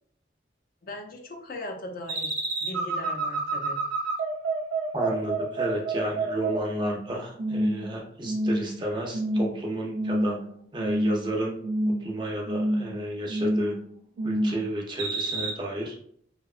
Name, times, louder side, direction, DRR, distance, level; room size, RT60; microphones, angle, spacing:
voice 1, 0.8-3.8, left 1 dB, 50° left, 2 dB, 0.4 m, -39 dB
sound 1, 2.1-7.1 7.4-7.9 8.2-8.8 9.1-9.5 9.9-10.5 10.8-11.3 11.6-12.1 12.5-12.9 13.3-13.8 14.2-14.6 15.0-15.5, right 2 dB, 85° right, 0.7 m, -28 dB
voice 2, 4.9-10.4 10.7-11.6 12.0-13.7 14.2-15.9, right 1 dB, 25° right, 0 dB, 0.4 m, -32 dB
2.7 x 2.1 x 2.3 m, 0.63 s
head